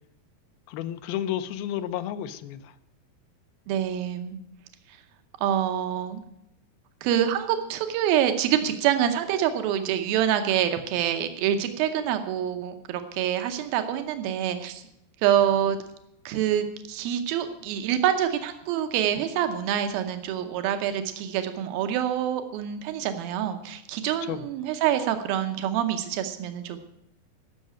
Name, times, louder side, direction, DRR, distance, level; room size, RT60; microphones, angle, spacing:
voice 1, 0.7-2.7 24.3-24.5, left 11 dB, 90° left, 11 dB, 2.6 m, -31 dB
voice 2, 3.7-4.4 4.9-5.0 5.4-6.2 7.0-14.8 15.2-15.8 16.3-26.8, right 10 dB, 90° right, 7 dB, 2.7 m, -26 dB
15.0 x 6.4 x 8.8 m, 0.84 s
omnidirectional pair, 4.1 m